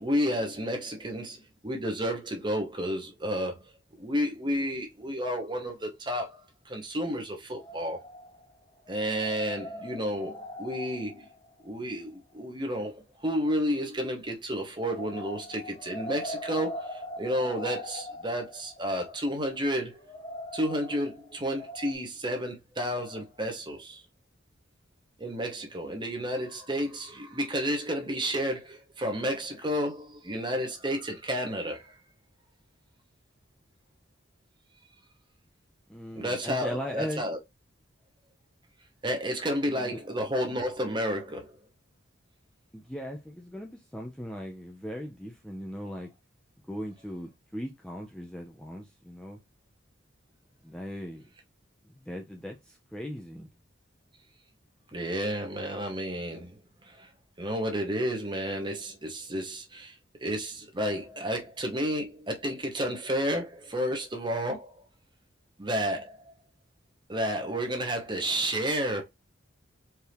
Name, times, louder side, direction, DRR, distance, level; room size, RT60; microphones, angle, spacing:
voice 1, 0.0-3.7 4.0-8.0 8.9-11.3 11.6-20.0 20.5-24.0 25.2-32.0 36.1-37.4 39.0-41.5 54.9-57.1 57.4-64.8 65.6-66.3 67.1-69.0, equal, 25° right, 1.0 m, -31 dB
sound 1, 7.6-8.6 8.9-12.0 14.7-21.9, left 1 dB, 25° left, 0.8 m, -41 dB
voice 2, 35.9-37.2 39.7-40.0 42.7-46.1 46.7-49.4 50.6-51.3 51.9-53.5, equal, 5° left, 0.5 m, -38 dB
4.6 x 2.7 x 3.4 m
head